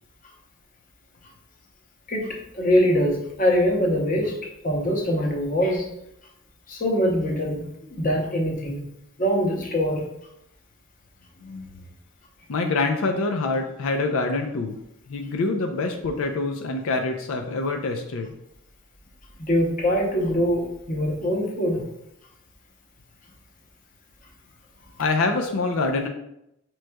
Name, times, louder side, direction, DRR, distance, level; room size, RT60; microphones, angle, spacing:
voice 1, 2.1-5.9 6.7-8.9 9.2-10.0 11.4-11.8 19.4-21.9, equal, 40° left, 1 dB, 0.7 m, -23 dB
voice 2, 12.5-14.8 15.1-18.3 25.0-26.1, left 3 dB, 85° left, 4 dB, 0.4 m, -25 dB
6.2 x 3.1 x 2.2 m, 0.81 s
head